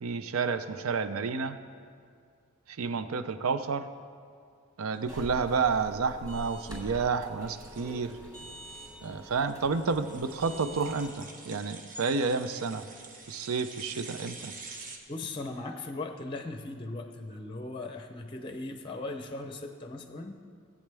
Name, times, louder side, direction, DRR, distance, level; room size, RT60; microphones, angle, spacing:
voice 1, 0.0-1.6 2.7-3.9 4.8-8.2 9.0-12.8 13.3-14.5, right 4 dB, 85° right, 11 dB, 0.5 m, -30 dB
sound 1, 5.0-15.0, right 3 dB, 40° right, 1.1 m, -48 dB
sound 2, 5.1-11.1, equal, 20° right, 2.9 m, -45 dB
voice 2, 15.1-20.4, left 2 dB, 25° left, 6 dB, 0.6 m, -38 dB
18.5 x 8.4 x 3.4 m, 2.2 s
head